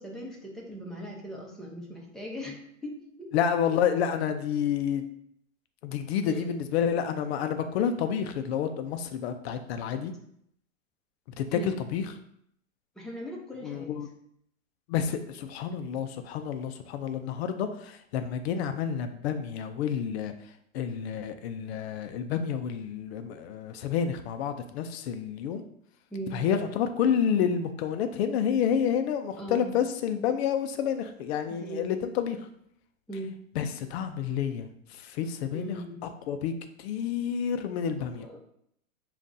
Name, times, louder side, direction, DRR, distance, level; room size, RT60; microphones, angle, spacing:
voice 1, 0.0-3.3 6.3-6.4 11.5-11.8 13.0-13.9 26.1-26.4 29.4-29.7 31.5-31.9 33.1-33.3 35.5-36.1 38.2-38.4, equal, ahead, -3 dB, 0.8 m, -39 dB
voice 2, 3.3-5.0 5.8-10.1 11.4-12.1 13.6-14.1 14.9-20.3 20.7-25.6 26.3-32.4 33.6-34.7 35.0-35.8 36.0-36.5 36.8-38.3, left 8 dB, 50° left, 8 dB, 0.5 m, -29 dB
7.1 x 2.5 x 2.6 m, 0.69 s
hypercardioid pair, 110°, 41 cm